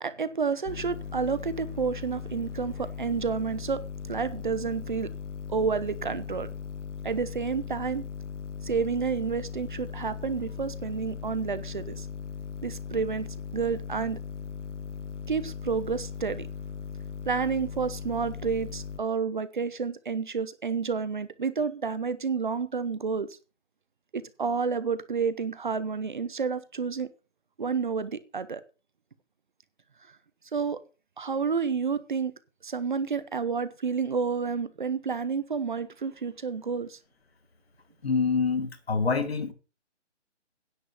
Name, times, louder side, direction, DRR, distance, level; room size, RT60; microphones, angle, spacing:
voice 1, 0.0-5.1 5.5-6.5 7.0-8.0 8.6-12.1 12.6-14.2 15.3-16.5 17.3-23.4 24.1-27.1 27.6-28.6 30.5-30.8 31.2-32.3 32.6-37.0, right 5 dB, 40° right, 0.8 m, -30 dB
sound 1, 0.7-19.0, left 7 dB, 85° left, 1.4 m, -38 dB
voice 2, 38.0-39.5, left 5 dB, 55° left, 1.9 m, -26 dB
10.0 x 7.4 x 6.7 m
hypercardioid pair, 170°, 36 cm